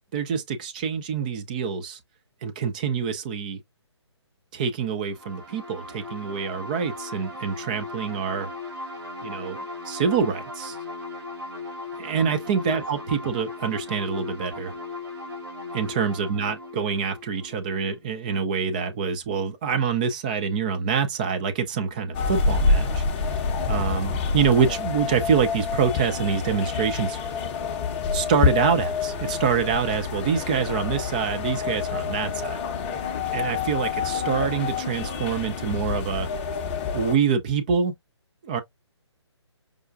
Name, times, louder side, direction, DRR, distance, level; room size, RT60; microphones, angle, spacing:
voice 1, 0.1-2.0 2.4-3.6 4.5-8.5 9.2-9.6 9.8-10.8 12.0-14.7 15.7-23.4 23.7-27.2 28.1-32.6 33.3-36.3 36.9-37.9 38.4-38.6, right 6 dB, 15° right, 0.3 m, -26 dB
sound 1, 5.1-18.6, left 2 dB, 55° right, 1.6 m, -38 dB
sound 2, 22.1-37.2, left 5 dB, 25° left, 0.6 m, -27 dB
4.8 x 2.3 x 2.3 m
figure-of-eight pair, 140°, 15 cm